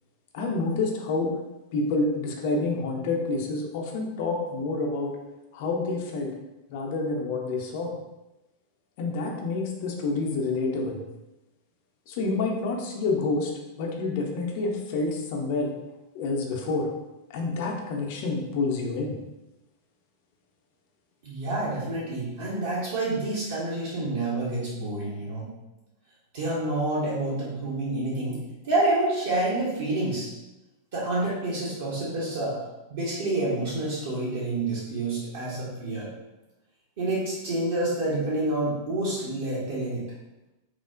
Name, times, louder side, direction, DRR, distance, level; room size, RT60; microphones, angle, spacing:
voice 1, 0.3-1.3 1.7-5.2 5.5-6.4 6.7-7.9 9.0-11.0 12.1-13.5 13.8-15.7 16.1-16.9 17.3-19.2, left 3 dB, 50° left, 1 dB, 0.4 m, -28 dB
voice 2, 21.2-25.5 26.3-28.4 28.6-30.3 30.9-32.6 32.9-36.1 37.0-40.0, right 2 dB, 55° right, -7 dB, 0.6 m, -28 dB
3.0 x 2.0 x 2.4 m, 0.98 s
figure-of-eight pair, 90°, 0 cm